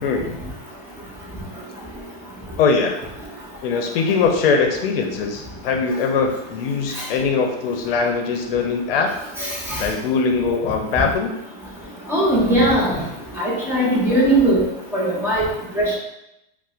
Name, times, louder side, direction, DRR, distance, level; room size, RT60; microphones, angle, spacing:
voice 1, 0.0-0.4 2.6-3.0 3.6-9.1 9.8-11.3, left 5 dB, 70° left, 3 dB, 0.6 m, -21 dB
voice 2, 9.4-9.8 12.1-13.0 13.4-14.6 14.9-15.5 15.7-16.0, right 1 dB, 10° right, -6 dB, 0.6 m, -19 dB
4.2 x 2.1 x 2.4 m, 0.86 s
supercardioid pair, 140°, 30 cm